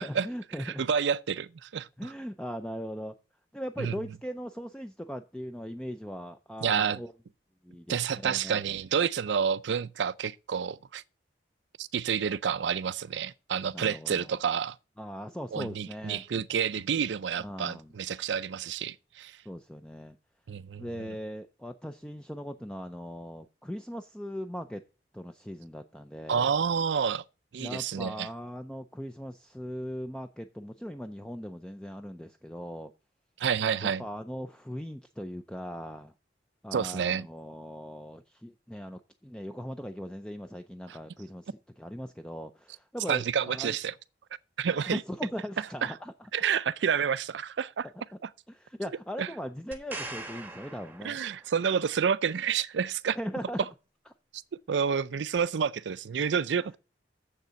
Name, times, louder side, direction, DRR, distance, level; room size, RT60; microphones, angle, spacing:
voice 1, 0.0-0.8 2.0-3.1 3.5-7.1 7.6-8.6 13.7-14.3 15.0-16.2 17.4-17.9 19.5-20.2 20.8-24.8 25.1-26.5 27.6-32.9 33.8-36.1 36.6-43.8 44.8-46.3 48.1-48.2 48.5-51.2 53.2-53.6 56.6-56.7, equal, 5° left, 0.4 m, -39 dB
voice 2, 0.6-1.9 3.8-3.9 6.6-7.0 7.9-11.0 11.8-14.8 15.5-19.4 20.5-21.2 26.3-27.2 27.5-28.3 33.4-34.0 36.7-37.3 40.9-41.0 43.1-43.9 44.6-45.0 45.8-45.9 46.3-47.9 48.2-48.3 49.2-49.3 51.0-53.2 54.7-56.8, right 7 dB, 90° right, 0.4 m, -29 dB
sound 1, 49.7-51.7 55.4-55.5, right 2 dB, 10° right, 1.1 m, -42 dB
7.3 x 6.6 x 6.9 m
head